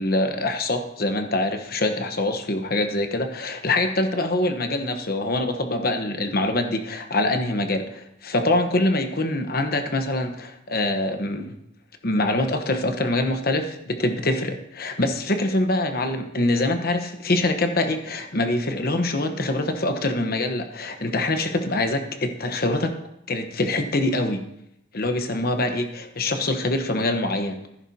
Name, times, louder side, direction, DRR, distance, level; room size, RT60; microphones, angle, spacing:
voice 1, 0.0-11.6 12.0-22.9 23.3-24.5 24.9-27.6, left 2 dB, 50° left, 6 dB, 1.1 m, -24 dB
14.5 x 11.0 x 2.9 m, 0.81 s
head